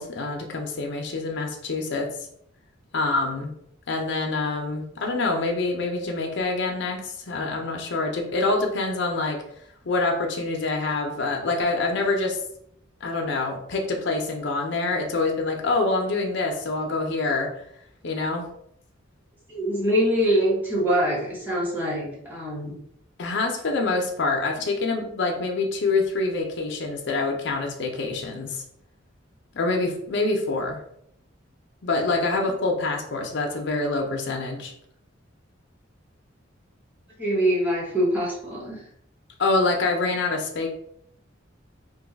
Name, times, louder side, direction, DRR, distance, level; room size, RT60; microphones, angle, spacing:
voice 1, 0.0-2.1 2.9-3.5 3.9-9.4 9.8-12.4 13.0-17.5 18.0-18.5 23.2-28.6 29.5-30.8 31.8-34.7 39.4-40.7, left 3 dB, 65° left, 1 dB, 0.6 m, -26 dB
voice 2, 19.5-22.8 37.2-38.8, equal, 10° right, -6 dB, 1.2 m, -24 dB
2.6 x 2.3 x 3.9 m, 0.70 s
head